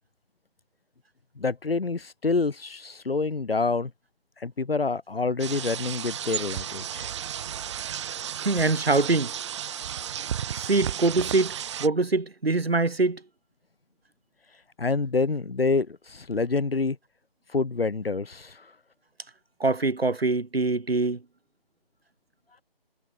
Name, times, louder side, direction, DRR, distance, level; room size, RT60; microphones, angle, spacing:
voice 1, 1.4-3.9 4.4-7.1 14.8-17.0 17.5-18.6, left 4 dB, 75° left, 3.4 m, -27 dB
sound 1, 5.4-11.9, right 9 dB, 30° right, 4.6 m, -33 dB
voice 2, 8.4-9.3 10.6-11.5 11.8-13.2 19.6-21.2, right 3 dB, 80° right, 7.8 m, -24 dB
figure-of-eight pair, 160°, 30 cm